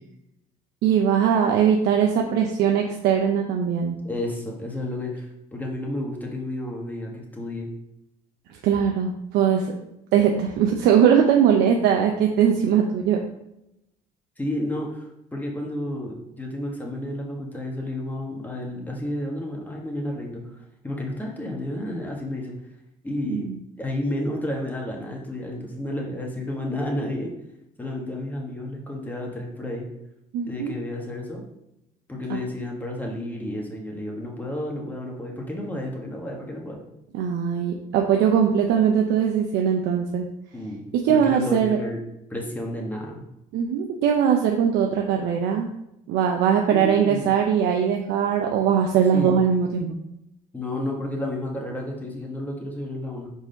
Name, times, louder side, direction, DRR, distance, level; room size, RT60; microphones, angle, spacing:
voice 1, 0.8-4.0 8.6-9.7 10.1-13.2 23.3-23.6 30.3-30.7 32.3-32.4 37.1-40.3 41.0-41.8 43.5-45.7 46.1-50.0, right 8 dB, 85° right, 2 dB, 0.7 m, -21 dB
voice 2, 4.0-7.7 14.4-22.5 23.0-23.5 23.8-27.3 27.8-29.8 30.5-31.4 32.1-36.8 40.5-40.8 41.1-42.0 42.3-43.2 46.7-47.3 49.1-49.4 50.5-53.3, left 1 dB, 10° left, -1 dB, 1.5 m, -31 dB
4.9 x 4.1 x 5.2 m, 0.84 s
cardioid pair, 110°, 17 cm